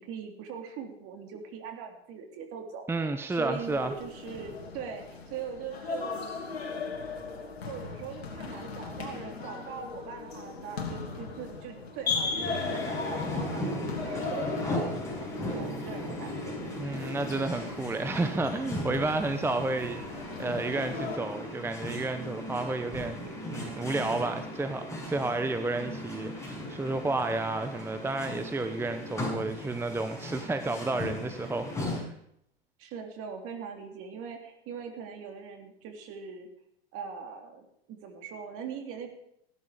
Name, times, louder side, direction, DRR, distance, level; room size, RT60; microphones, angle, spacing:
voice 1, 0.0-6.2 7.6-16.6 32.8-36.5 36.9-39.1, right 6 dB, 45° right, 4 dB, 3.3 m, -41 dB
voice 2, 2.9-3.9 16.8-32.1, right 2 dB, 10° right, 8 dB, 0.9 m, -31 dB
sound 1, 3.5-21.2, left 4 dB, 85° left, 3.1 m, -38 dB
sound 2, 12.4-32.0, left 1 dB, 10° left, 6.5 m, -37 dB
17.0 x 11.5 x 5.1 m, 0.74 s
hypercardioid pair, 100°, 30 cm